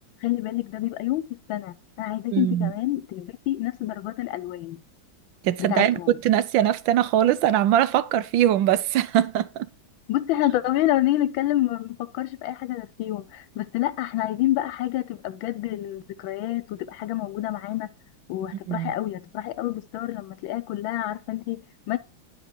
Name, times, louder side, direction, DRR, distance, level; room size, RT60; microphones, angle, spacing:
voice 1, 0.2-4.8 5.7-6.1 10.1-17.9 18.3-22.0, left 14 dB, 85° left, 1.4 m, -28 dB
voice 2, 2.3-2.7 5.4-9.7 18.7-18.9, right 11 dB, 80° right, 1.4 m, -21 dB
10.5 x 4.9 x 4.5 m
omnidirectional pair, 2.1 m